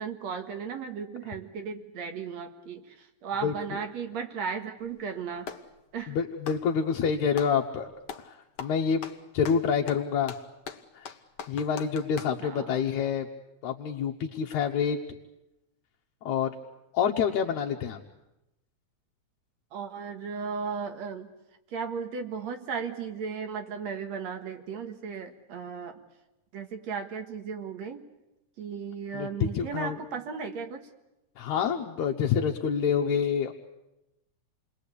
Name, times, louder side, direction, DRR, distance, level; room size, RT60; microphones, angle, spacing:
voice 1, 0.0-5.5 5.9-6.2 12.4-12.8 19.7-21.3 21.7-26.0 26.5-28.1 28.6-30.9, right 6 dB, 65° right, 5 dB, 2.8 m, -36 dB
Clapping, 4.8-5.7 6.3-7.6 8.0-8.3 8.6-12.4, left 6 dB, 60° left, 1.1 m, -41 dB
voice 2, 6.1-7.9 8.2-9.1 9.3-10.4 10.9-11.1 11.5-13.3 13.6-15.0 16.2-16.5 16.9-18.0 29.1-30.0 31.4-33.5, left 7 dB, 75° left, 2 dB, 2.4 m, -27 dB
28.5 x 21.0 x 8.4 m, 0.93 s
omnidirectional pair, 3.4 m